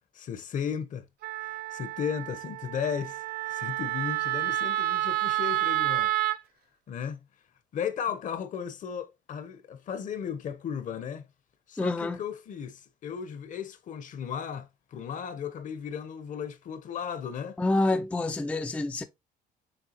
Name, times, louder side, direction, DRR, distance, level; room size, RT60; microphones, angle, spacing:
voice 1, 0.1-1.0 1.7-6.1 6.9-7.2 7.7-11.2 11.7-17.6, left 7 dB, 50° left, 0.8 m, -35 dB
Wind instrument woodwind instrument, 1.2-6.4, right 15 dB, 70° right, 0.4 m, -29 dB
voice 2, 11.8-12.2 17.6-19.0, left 2 dB, 10° left, 0.4 m, -27 dB
6.6 x 2.8 x 2.8 m
cardioid pair, 110°, 17 cm